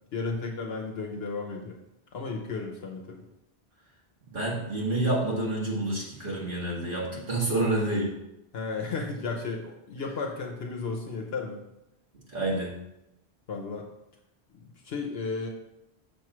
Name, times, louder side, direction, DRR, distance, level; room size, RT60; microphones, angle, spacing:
voice 1, 0.1-1.8 2.1-3.2 8.5-11.6 13.5-13.9 14.5-15.5, left 4 dB, 70° left, 1 dB, 1.0 m, -34 dB
voice 2, 4.3-8.1 12.3-12.7, right 2 dB, 55° right, -5 dB, 1.5 m, -28 dB
6.9 x 3.1 x 5.9 m, 0.87 s
omnidirectional pair, 1.1 m